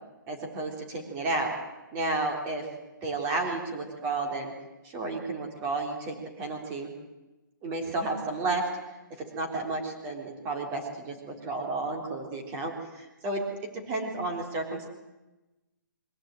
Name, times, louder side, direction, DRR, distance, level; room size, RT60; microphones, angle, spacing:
voice 1, 0.3-1.6 1.9-2.7 3.0-4.5 4.8-6.9 7.6-8.7 9.3-13.4 13.7-14.9, right 2 dB, 20° right, 3 dB, 3.7 m, -32 dB
23.0 x 16.5 x 9.2 m, 1.0 s
hypercardioid pair, 175°, 11 cm